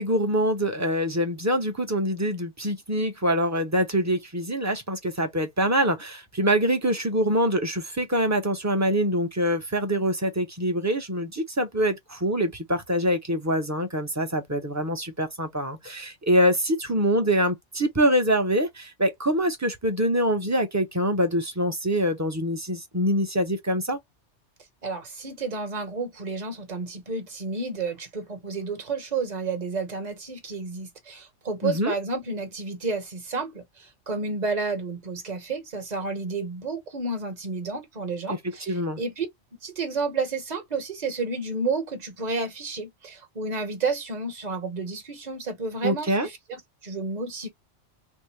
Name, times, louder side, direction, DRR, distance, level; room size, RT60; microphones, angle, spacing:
voice 1, 0.0-24.0 31.6-31.9 38.3-39.0 45.8-46.3, equal, 20° right, 0.6 m, -25 dB
voice 2, 24.8-33.6 34.1-39.3 39.6-47.5, right 3 dB, 40° right, 1.1 m, -31 dB
3.6 x 2.0 x 3.2 m
omnidirectional pair, 1.2 m